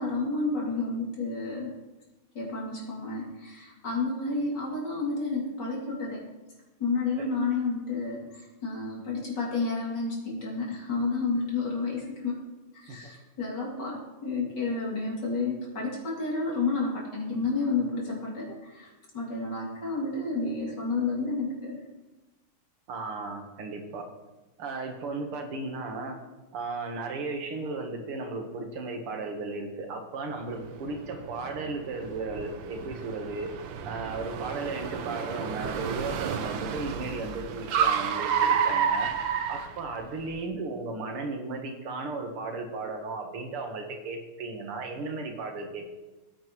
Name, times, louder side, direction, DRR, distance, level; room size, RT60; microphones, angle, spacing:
voice 1, 0.0-1.7 2.4-6.2 6.8-12.4 12.7-18.9 19.1-21.8, left 3 dB, 50° left, -3 dB, 3.5 m, -30 dB
voice 2, 22.9-24.1 24.6-26.2 26.5-33.5 33.9-39.1 39.5-45.9, right 3 dB, 85° right, 3 dB, 2.3 m, -35 dB
Car, 30.5-40.3, right 7 dB, 70° right, 1.4 m, -30 dB
17.5 x 9.5 x 3.1 m, 1.1 s
omnidirectional pair, 2.4 m